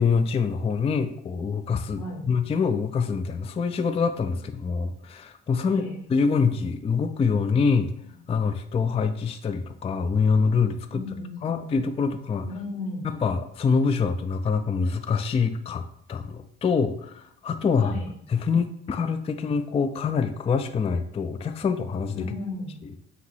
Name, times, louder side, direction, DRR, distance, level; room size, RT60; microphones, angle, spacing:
voice 1, 0.0-7.9 8.3-11.0 11.4-12.5 13.0-17.9 18.3-22.3 22.8-23.0, left 5 dB, 20° left, 9 dB, 0.3 m, -25 dB
voice 2, 2.0-2.3 5.6-6.0 10.9-11.9 12.4-13.1 17.8-18.1 22.2-22.8, left 2 dB, 80° left, -3 dB, 1.5 m, -35 dB
5.0 x 2.6 x 3.3 m, 0.69 s
hypercardioid pair, 60°, 33 cm